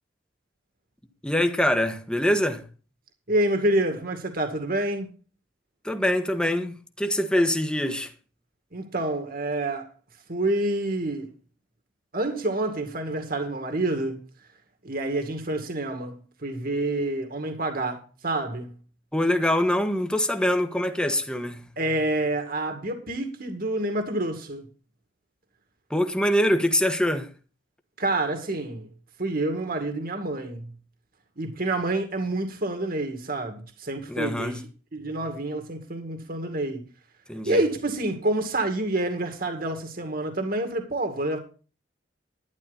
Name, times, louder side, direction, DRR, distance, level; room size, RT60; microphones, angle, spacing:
voice 1, 1.2-2.6 5.8-8.1 19.1-21.7 25.9-27.3 34.1-34.6 37.3-37.6, left 1 dB, 5° left, 1.3 m, -24 dB
voice 2, 3.3-5.1 8.7-9.9 10.3-11.3 12.1-14.2 14.8-18.7 21.8-24.7 28.0-28.9 29.2-30.7 31.4-34.6 34.9-36.8 37.5-41.4, right 2 dB, 50° right, 2.1 m, -28 dB
12.0 x 11.0 x 4.0 m
head